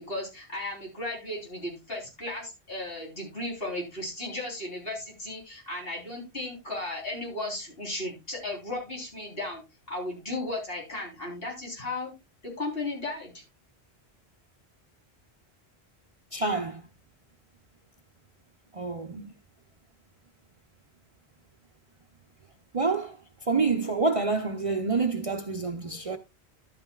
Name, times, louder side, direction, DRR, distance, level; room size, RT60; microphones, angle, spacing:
voice 1, 0.0-9.6 9.9-12.1 12.4-13.4, left 2 dB, 60° left, 4.0 m, -35 dB
voice 2, 16.3-16.8 18.7-19.3 22.7-23.2 23.5-26.2, right 4 dB, 40° right, 0.6 m, -27 dB
12.0 x 8.7 x 2.3 m
omnidirectional pair, 1.1 m